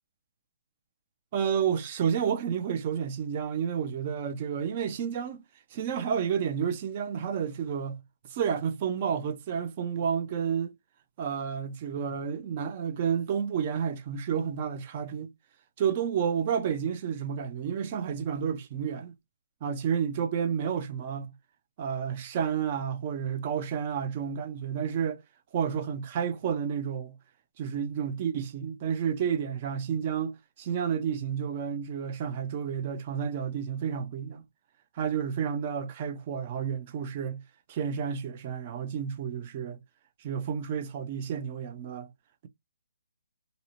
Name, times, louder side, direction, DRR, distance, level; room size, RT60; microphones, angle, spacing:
voice 1, 1.3-5.4 5.7-8.0 8.3-10.7 11.2-15.3 15.8-19.1 19.6-21.3 21.8-25.2 25.5-27.2 27.6-34.4 34.9-37.4 37.7-39.8 40.2-42.1, right 7 dB, 30° right, 0.4 m, -30 dB
2.5 x 2.1 x 2.7 m
hypercardioid pair, 165°, 0 cm